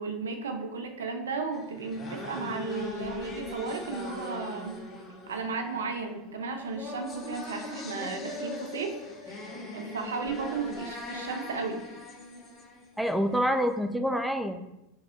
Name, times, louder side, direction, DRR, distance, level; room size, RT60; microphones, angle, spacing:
voice 1, 0.0-4.8 5.3-8.9 9.3-11.8, right 4 dB, 85° right, 6 dB, 0.5 m, -34 dB
sound 1, 1.5-13.4, left 2 dB, 35° left, 1.3 m, -40 dB
voice 2, 13.0-14.7, equal, ahead, 7 dB, 0.4 m, -27 dB
5.2 x 3.2 x 2.4 m, 0.92 s
hypercardioid pair, 95°, 0 cm